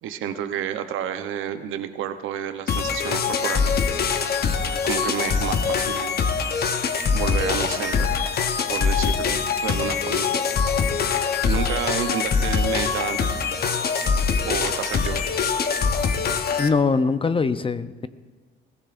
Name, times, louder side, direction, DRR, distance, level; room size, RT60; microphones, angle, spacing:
voice 1, 0.0-3.8 4.8-6.2 7.1-8.1 8.7-10.3 11.4-13.4 14.4-15.2, right 9 dB, 85° right, 9 dB, 0.8 m, -30 dB
sound 1, 2.7-16.7, left 5 dB, 50° left, 0.9 m, -23 dB
voice 2, 16.6-18.1, left 4 dB, 25° left, 12 dB, 0.6 m, -22 dB
21.5 x 17.5 x 2.6 m, 1.4 s
cardioid pair, 90°, 20 cm